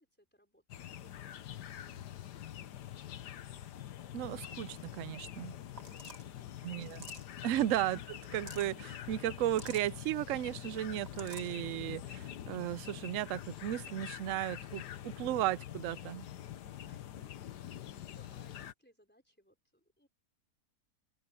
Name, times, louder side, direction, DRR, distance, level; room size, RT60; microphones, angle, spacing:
voice 1, 0.0-3.2 5.9-6.9 16.6-20.1, equal, 5° left, 4.2 m, -67 dB
sound 1, 0.7-18.7, left 11 dB, 80° left, 1.5 m, -45 dB
voice 2, 4.1-5.6 6.6-7.0 7.4-16.3, right 13 dB, 65° right, 0.8 m, -35 dB
sound 2, 5.8-6.3 6.8-7.4 8.2-8.7 9.4-9.9 10.8-11.5, right 2 dB, 25° right, 1.8 m, -50 dB
open air
omnidirectional pair, 1.8 m